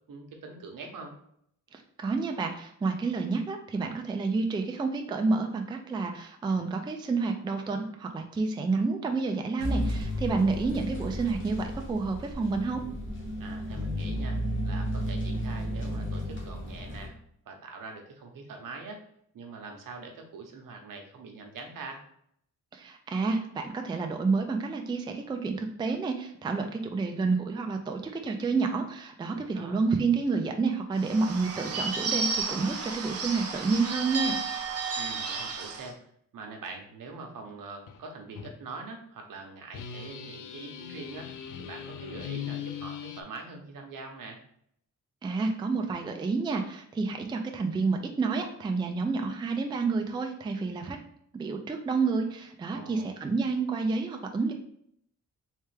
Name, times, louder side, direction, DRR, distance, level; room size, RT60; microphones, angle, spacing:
voice 1, 0.1-1.2 10.3-10.7 13.4-17.2 17.5-19.0 19.3-22.0 29.3-29.8 34.9-36.0 36.3-41.3 41.6-44.4 52.7-53.1, right 3 dB, 75° right, 3 dB, 0.9 m, -43 dB
voice 2, 1.7-12.8 22.7-34.4 45.2-51.0 51.3-54.5, right 4 dB, 15° right, 4 dB, 0.3 m, -29 dB
sound 1, 9.6-17.1, equal, 35° left, 1.0 m, -33 dB
Bird / Bell, 30.9-35.9, right 4 dB, 45° right, 0.6 m, -32 dB
sound 2, 37.9-38.0 38.4-38.6 39.7-43.2, left 9 dB, 70° left, 0.4 m, -39 dB
3.3 x 3.3 x 3.2 m, 0.69 s
wide cardioid pair, 155°, 33 cm